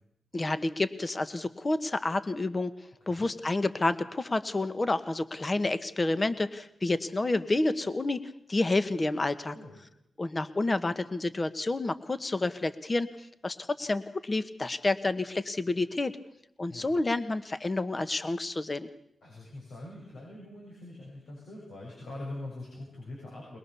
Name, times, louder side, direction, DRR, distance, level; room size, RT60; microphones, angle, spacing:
voice 1, 0.3-2.7 3.1-8.2 8.5-9.5 10.2-16.1 16.6-18.9, left 2 dB, 35° left, 12 dB, 1.2 m, -29 dB
voice 2, 3.0-3.3 9.5-9.7 16.7-16.9 19.2-23.6, left 2 dB, 85° left, -3 dB, 7.2 m, -43 dB
22.0 x 21.0 x 7.0 m, 0.77 s
cardioid pair, 65°, 0 cm